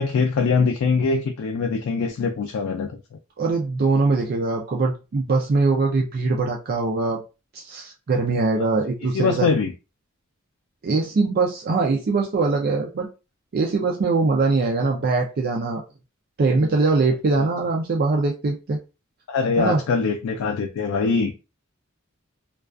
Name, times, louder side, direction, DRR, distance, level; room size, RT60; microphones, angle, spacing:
voice 1, 0.0-2.9 9.1-9.7 19.3-21.3, left 4 dB, 85° left, 0.3 m, -22 dB
voice 2, 3.4-7.2 7.5-9.5 10.8-13.1 13.5-15.8 16.4-18.8 19.6-19.8, right 3 dB, 45° right, 0.4 m, -22 dB
2.3 x 2.3 x 2.4 m
head